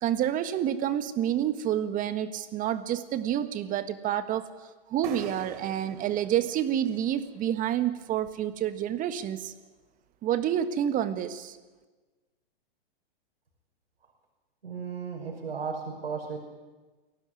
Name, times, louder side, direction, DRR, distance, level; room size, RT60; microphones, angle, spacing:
voice 1, 0.0-4.5 4.9-9.5 10.2-11.6, right 10 dB, 30° right, 11 dB, 1.5 m, -28 dB
sound 1, 5.0-8.7, right 6 dB, 55° right, 3.1 m, -46 dB
voice 2, 14.6-16.4, right 5 dB, 85° right, 2 dB, 5.9 m, -35 dB
23.0 x 17.0 x 9.8 m, 1.3 s
hypercardioid pair, 120°, 29 cm